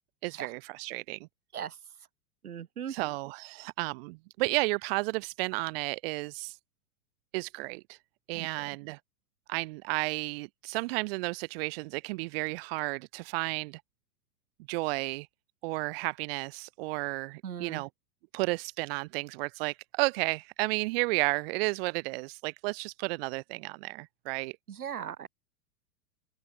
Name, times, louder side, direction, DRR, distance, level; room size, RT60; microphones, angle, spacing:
voice 1, 0.2-1.2 2.9-6.6 7.3-8.0 8.3-9.0 9.5-13.8 14.7-15.3 15.6-17.9 18.3-24.5, right 24 dB, 40° right, 0.8 m, -32 dB
voice 2, 2.4-2.9 8.3-8.5 17.4-17.8 24.7-25.3, right 8 dB, 70° right, 4.2 m, -38 dB
open air
figure-of-eight pair, 105°, 45 cm